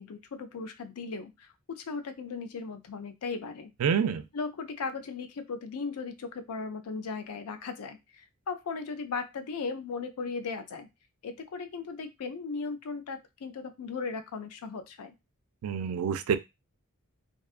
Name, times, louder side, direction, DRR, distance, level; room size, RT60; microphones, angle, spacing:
voice 1, 0.0-3.7 4.3-10.9 11.2-15.1, left 4 dB, 85° left, 9 dB, 0.5 m, -37 dB
voice 2, 3.8-4.2 15.6-16.4, right 7 dB, 70° right, 12 dB, 0.3 m, -27 dB
2.6 x 2.3 x 2.3 m, 0.22 s
head